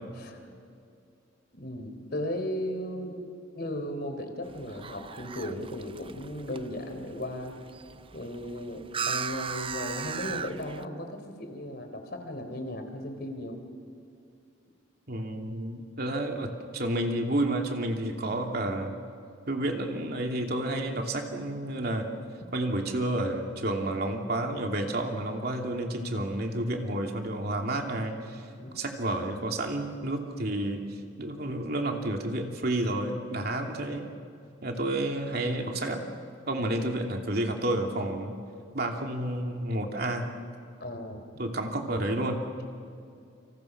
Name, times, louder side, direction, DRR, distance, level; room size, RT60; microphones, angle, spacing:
voice 1, 1.5-3.2 3.6-7.6 8.1-13.6 28.6-28.7 40.8-41.2, left 1 dB, 55° left, 6 dB, 3.7 m, -36 dB
sound 1, 4.4-10.9, right 6 dB, 30° right, 0.6 m, -38 dB
voice 2, 15.1-18.9 19.5-22.1 22.5-28.4 28.7-30.8 31.2-34.1 34.6-36.0 36.5-38.4 38.7-40.3 41.4-42.4, right 1 dB, 55° right, 2 dB, 2.9 m, -30 dB
29.5 x 26.5 x 6.1 m, 2.5 s
head